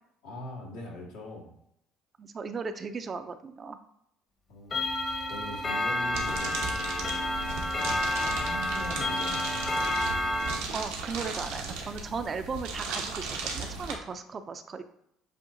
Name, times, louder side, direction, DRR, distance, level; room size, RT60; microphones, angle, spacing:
voice 1, 0.2-1.5 4.5-4.9 5.3-7.2 8.0-10.4, left 1 dB, 80° left, -1 dB, 1.4 m, -42 dB
voice 2, 2.2-3.8 10.7-14.8, right 5 dB, 40° right, 9 dB, 0.5 m, -36 dB
Clock, 4.7-10.5, left 1 dB, 40° left, 1.1 m, -30 dB
sound 1, 6.1-13.9, right 4 dB, 80° right, 0.9 m, -36 dB
7.5 x 2.6 x 2.6 m, 0.75 s
hypercardioid pair, 70°, 0 cm